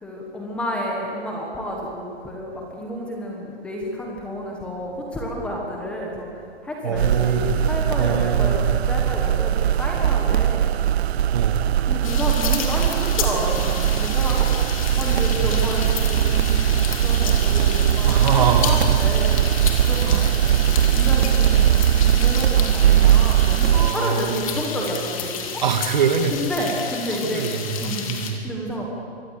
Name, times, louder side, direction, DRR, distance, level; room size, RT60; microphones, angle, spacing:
voice 1, 0.0-10.7 11.8-16.8 17.0-25.6 26.3-27.5 27.8-28.1 28.4-28.9, equal, 5° left, -1 dB, 1.2 m, -30 dB
voice 2, 6.8-7.6 8.0-8.7 11.3-11.7 15.4-15.6 18.1-18.8 20.0-20.3 23.7-24.6 25.6-26.3 27.1-28.4, right 6 dB, 45° right, 7 dB, 1.9 m, -24 dB
sound 1, 7.0-23.9, right 11 dB, 75° right, 0.5 m, -20 dB
sound 2, 12.0-28.3, left 6 dB, 30° left, 2.5 m, -31 dB
24.0 x 19.0 x 8.2 m, 2.3 s
hypercardioid pair, 180°, 32 cm